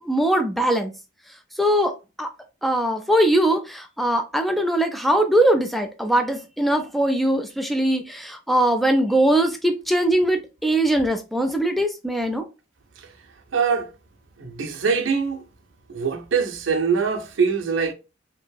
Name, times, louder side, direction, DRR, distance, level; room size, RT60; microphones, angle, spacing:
voice 1, 0.0-0.9 1.6-1.9 2.2-2.3 2.6-12.5, right 1 dB, ahead, 0.3 m, -21 dB
voice 2, 13.5-13.9 14.4-15.4 15.9-17.9, right 5 dB, 65° right, 0.6 m, -23 dB
2.9 x 2.6 x 2.2 m
head